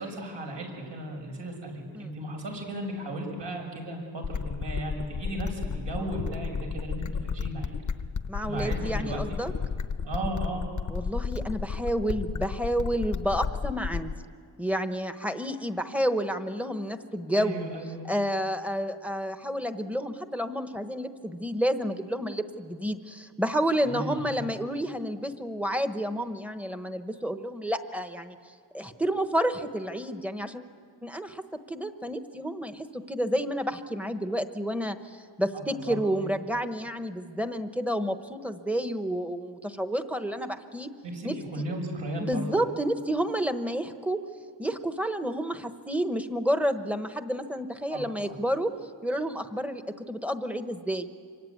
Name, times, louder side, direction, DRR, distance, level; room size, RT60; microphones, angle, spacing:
voice 1, 0.0-7.7 8.4-9.2 10.0-10.7 17.3-18.1 23.8-24.4 35.5-36.3 41.0-42.5 47.9-48.0 48.3-48.4, right 1 dB, 75° right, 1 dB, 6.7 m, -35 dB
sound 1, 4.2-14.2, left 5 dB, 45° left, 0.9 m, -32 dB
voice 2, 8.3-9.5 10.9-14.1 14.6-17.7 18.0-28.4 28.7-30.6 31.0-40.9 41.2-41.4 42.2-44.2 44.6-48.7 49.0-51.2, equal, 5° right, 8 dB, 1.1 m, -30 dB
26.5 x 24.0 x 9.4 m, 2.1 s
wide cardioid pair, 160°, 43 cm